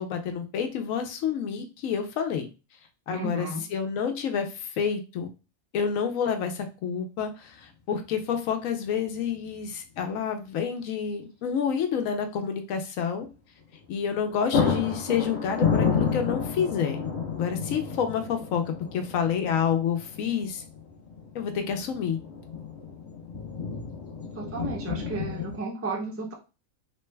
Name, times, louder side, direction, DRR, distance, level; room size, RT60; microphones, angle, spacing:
voice 1, 0.0-2.5 3.1-5.3 5.7-13.3 13.9-17.0 17.4-18.6 18.9-20.6 21.3-22.2, left 7 dB, 80° left, 6 dB, 1.0 m, -29 dB
voice 2, 3.1-3.6 24.4-26.3, right 2 dB, 25° right, 0 dB, 0.3 m, -33 dB
sound 1, 7.6-7.7 9.3-9.7 9.9-10.0 13.7-13.9 14.2-25.6, left 6 dB, 40° left, 0.7 m, -31 dB
3.1 x 2.2 x 3.2 m, 0.31 s
omnidirectional pair, 1.4 m